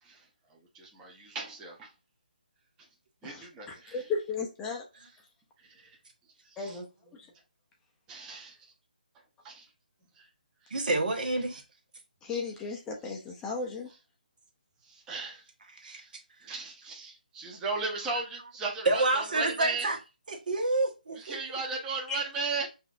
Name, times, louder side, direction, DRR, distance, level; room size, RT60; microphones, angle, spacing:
voice 1, 0.0-1.9 2.8-2.9 3.2-4.1 4.9-5.2 5.6-6.0 6.4-6.8 8.1-8.7 9.1-9.7 10.1-10.3 10.6-10.9 13.9-14.0 14.8-15.5 15.9-16.1 16.4-19.9 21.1-22.7, right 4 dB, 15° right, 0.8 m, -37 dB
voice 2, 3.9-4.8 6.6-6.8 7.2-7.3 12.2-13.9 22.1-22.2, left 4 dB, 10° left, 0.5 m, -34 dB
voice 3, 10.7-11.6 15.8-16.0 18.8-20.0 20.3-21.4, right 2 dB, 60° right, 1.3 m, -28 dB
5.7 x 2.7 x 2.4 m
figure-of-eight pair, 155°, 5 cm